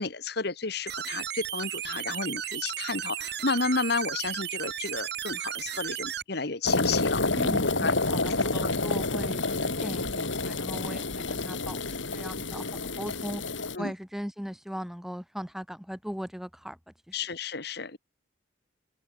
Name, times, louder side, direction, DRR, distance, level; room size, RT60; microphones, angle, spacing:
voice 1, 0.0-8.7 13.7-13.9 17.1-18.0, left 4 dB, 55° left, 1.7 m, -32 dB
sound 1, 0.9-6.2, right 10 dB, 55° right, 2.2 m, -34 dB
sound 2, 6.7-13.8, left 3 dB, 75° left, 3.6 m, -29 dB
voice 2, 7.3-13.4 13.8-16.8 17.1-17.2, equal, ahead, 2.8 m, -38 dB
open air
head